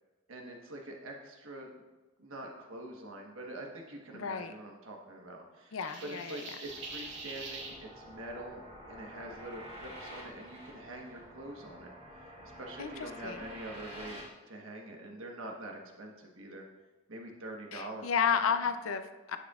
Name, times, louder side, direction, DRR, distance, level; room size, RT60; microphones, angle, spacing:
voice 1, 0.3-1.7 2.2-8.6 8.9-16.6 17.1-18.1 18.5-18.6, right 1 dB, 75° right, 1 dB, 1.3 m, -45 dB
voice 2, 4.1-4.5 5.7-6.4 12.8-13.4 17.7-19.4, left 6 dB, 80° left, 9 dB, 0.5 m, -32 dB
sound 1, 5.8-7.7, right 3 dB, 60° right, 1.6 m, -44 dB
sound 2, 6.6-14.3, equal, 30° right, 2.5 m, -49 dB
9.6 x 8.2 x 2.4 m, 1.2 s
head